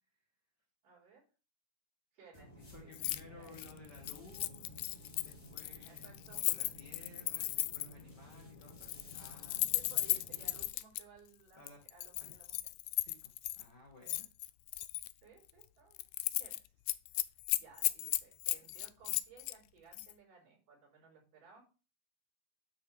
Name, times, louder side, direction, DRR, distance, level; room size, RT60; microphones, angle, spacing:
voice 1, 0.8-1.2 2.1-2.9 3.3-3.6 5.8-6.4 9.7-12.6 15.2-16.1 16.4-16.6 17.6-21.7, right 5 dB, 60° right, -3 dB, 5.7 m, -59 dB
sound 1, 2.3-10.7, left 1 dB, 25° left, 2.1 m, -55 dB
voice 2, 2.7-9.7 11.5-11.8 12.2-12.3 12.9-14.3, left 2 dB, 55° left, 1 dB, 1.2 m, -57 dB
Keys jangling, 2.9-3.2 3.5-8.0 8.7-11.0 11.7-13.6 14.1-15.1 15.5-15.7 16.0-16.6 16.9-19.6 19.9-20.1, left 18 dB, 85° left, 2.4 m, -36 dB
11.0 x 6.0 x 3.4 m, 0.34 s
omnidirectional pair, 4.2 m